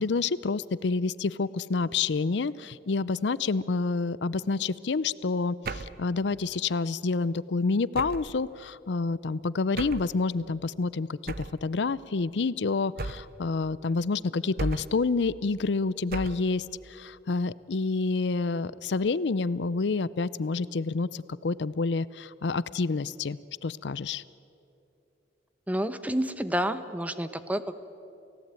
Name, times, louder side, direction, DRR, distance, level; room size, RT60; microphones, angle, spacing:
voice 1, 0.0-24.2, left 4 dB, 70° left, 19 dB, 0.5 m, -28 dB
sound 1, 5.6-6.1 7.9-8.4 9.8-10.1 11.3-11.6 13.0-13.4 14.6-15.1 16.1-16.5, right 3 dB, 60° right, 0.9 m, -35 dB
voice 2, 25.7-27.8, equal, 10° right, 12 dB, 0.9 m, -29 dB
29.0 x 17.0 x 9.0 m, 2.8 s
head